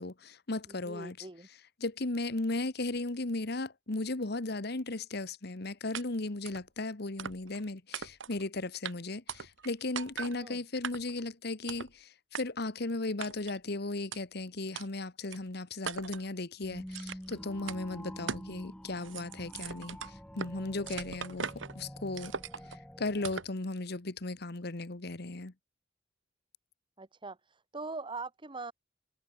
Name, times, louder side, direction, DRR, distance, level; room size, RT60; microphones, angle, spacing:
voice 1, 0.0-1.3 1.8-20.0 20.3-21.5 21.7-22.3 23.0-25.5, left 2 dB, 60° left, 1.4 m, -36 dB
voice 2, 0.7-1.5 10.3-10.6 27.0-27.4 27.7-28.7, right 3 dB, 25° right, 1.4 m, -41 dB
sound 1, 5.9-6.0 6.5-6.6 7.2-7.6 7.9-8.4 8.8-8.9 9.3-9.7 10.0-10.4 10.8-11.2 11.7-11.9 12.3-12.4 13.2-13.6 14.1-14.2 14.8-14.9 15.3-15.4 15.9-16.3 16.9-17.3 17.7-17.8 18.3-18.5 18.8-20.5 20.9-21.7 22.2-22.8 23.2-23.5, right 6 dB, 90° right, 1.4 m, -40 dB
sound 2, 16.6-23.4, equal, 5° left, 1.8 m, -46 dB
head